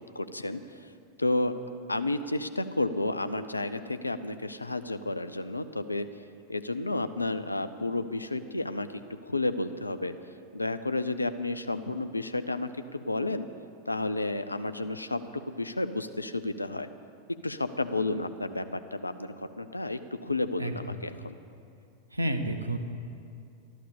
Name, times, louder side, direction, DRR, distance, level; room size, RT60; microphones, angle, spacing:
voice 1, 0.1-0.6 1.2-1.5 1.9-6.1 6.5-8.9 9.3-10.1 10.5-13.5 13.9-15.2 15.5-16.9 17.4-21.3, left 2 dB, 85° left, 10 dB, 0.6 m, -31 dB
voice 2, 20.6-21.3 22.1-22.8, right 1 dB, 85° right, 7 dB, 1.0 m, -31 dB
12.5 x 11.5 x 6.9 m, 2.5 s
figure-of-eight pair, 90°, 0 cm